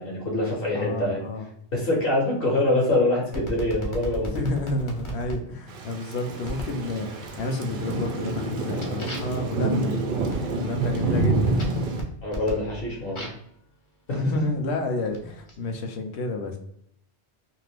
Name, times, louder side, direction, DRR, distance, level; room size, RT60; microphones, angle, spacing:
voice 1, 0.0-1.2 1.7-4.5 12.2-13.2 14.1-14.2, left 2 dB, 60° left, -3 dB, 1.1 m, -25 dB
voice 2, 0.7-1.5 4.3-9.9 10.6-11.5 14.2-16.6, left 2 dB, 80° left, 4 dB, 0.9 m, -30 dB
sound 1, 3.3-5.4 6.4-6.8 7.3-7.7 8.1-13.5 14.3-15.5, equal, 30° left, 0.7 m, -38 dB
Thunder / Rain, 5.7-12.0, right 2 dB, 60° right, 0.7 m, -27 dB
2.6 x 2.4 x 3.3 m, 0.71 s
omnidirectional pair, 1.1 m